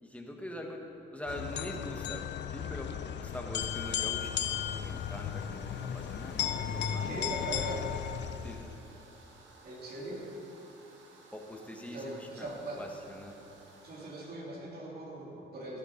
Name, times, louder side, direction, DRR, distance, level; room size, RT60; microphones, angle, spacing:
voice 1, 0.0-0.8 1.1-2.2 2.5-2.9 3.2-7.5 8.4-8.7 11.3-12.5 12.8-13.3, left 1 dB, 5° left, 1 dB, 1.5 m, -43 dB
sound 1, 1.3-8.8, left 9 dB, 60° left, 0.5 m, -35 dB
sound 2, 3.6-14.3, right 3 dB, 70° right, 1.9 m, -57 dB
voice 2, 7.0-7.8 9.6-10.2 11.8-12.8 13.8-15.8, right 1 dB, 50° right, -3 dB, 3.0 m, -40 dB
14.0 x 11.5 x 4.0 m, 2.9 s
cardioid pair, 90°, 20 cm